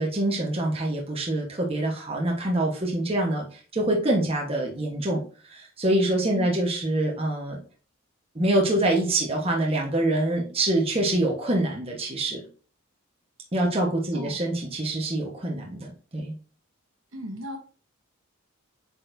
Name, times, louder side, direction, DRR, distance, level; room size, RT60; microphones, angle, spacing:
voice 1, 0.0-7.6 8.3-12.4 13.5-16.3, right 1 dB, 25° right, 1.2 m, -25 dB
voice 2, 14.1-14.4 17.1-17.6, equal, 65° right, 1.5 m, -36 dB
8.6 x 4.3 x 2.7 m
head